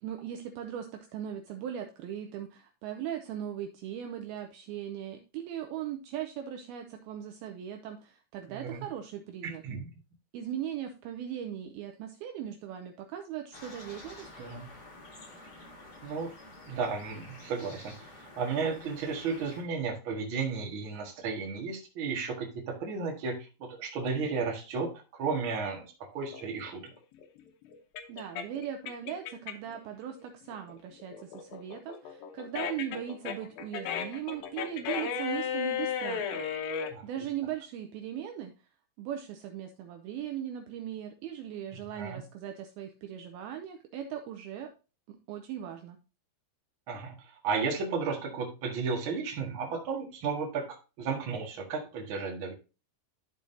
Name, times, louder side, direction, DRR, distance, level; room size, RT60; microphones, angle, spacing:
voice 1, 0.0-9.6 10.3-14.5 28.1-36.4 37.0-38.5 39.0-44.7 45.1-46.0, right 10 dB, 85° right, 5 dB, 2.2 m, -39 dB
voice 2, 8.5-8.8 9.4-9.9 14.4-14.7 16.0-16.3 16.6-26.8 36.9-37.0 41.9-42.2 46.9-47.2 47.4-52.5, right 5 dB, 50° right, 0 dB, 1.6 m, -34 dB
sound 1, 13.5-19.6, left 2 dB, 45° left, 1.4 m, -49 dB
sound 2, 26.3-29.8 30.2-36.9, left 7 dB, 75° left, 2.3 m, -35 dB
12.5 x 4.9 x 2.7 m, 0.31 s
omnidirectional pair, 5.0 m